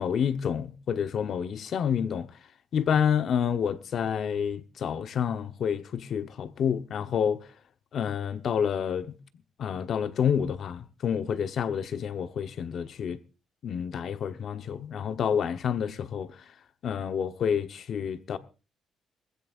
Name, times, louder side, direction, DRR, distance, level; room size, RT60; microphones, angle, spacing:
voice 1, 0.0-2.3 2.7-7.5 7.9-9.1 9.6-13.2 13.6-16.3 16.8-18.4, left 8 dB, 65° left, 1.1 m, -28 dB
21.0 x 15.5 x 2.6 m
cardioid pair, 90°, 0 cm